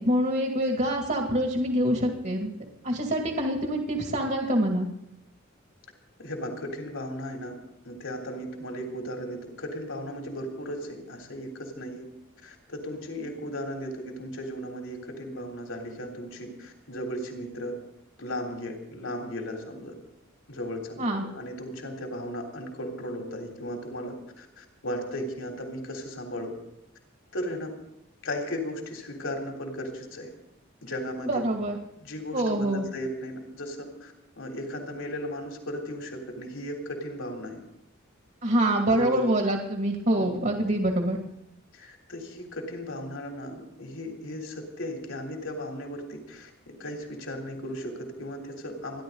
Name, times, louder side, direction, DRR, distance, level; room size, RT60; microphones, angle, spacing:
voice 1, 0.0-2.5 2.8-4.9 21.0-21.2 31.2-31.8 32.3-32.9 38.4-41.2, right 1 dB, 50° right, 1 dB, 2.3 m, -25 dB
voice 2, 6.2-7.5 7.9-12.0 12.4-17.8 18.2-19.9 20.5-26.5 27.3-27.7 28.2-30.3 30.8-31.4 32.0-37.6 38.9-39.3 40.2-40.3 41.7-49.0, equal, 70° left, 2 dB, 3.5 m, -36 dB
29.5 x 11.5 x 4.0 m, 0.79 s
head